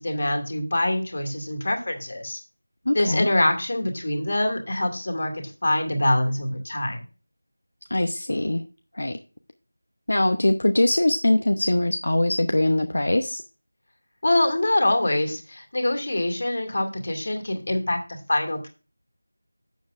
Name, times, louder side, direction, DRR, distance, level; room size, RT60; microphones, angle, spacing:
voice 1, 0.0-2.4 2.9-7.0 14.2-18.7, left 1 dB, 40° left, 4 dB, 2.2 m, -24 dB
voice 2, 2.9-3.3 7.9-8.6 8.9-9.2 10.1-13.4, left 1 dB, 60° left, 7 dB, 0.8 m, -22 dB
11.5 x 7.5 x 2.5 m, 0.34 s
figure-of-eight pair, 180°, 0 cm